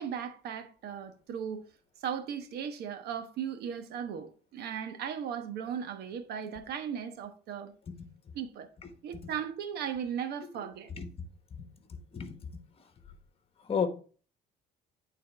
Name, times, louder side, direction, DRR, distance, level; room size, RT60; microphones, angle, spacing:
voice 1, 0.0-1.6 2.0-7.7 8.3-8.7 9.0-10.9, right 8 dB, 70° right, 1.1 m, -37 dB
voice 2, 11.0-11.6 11.9-12.4 12.8-12.9 13.6-13.9, left 6 dB, 35° left, 1.3 m, -34 dB
8.7 x 4.0 x 3.4 m
cardioid pair, 110°, 17 cm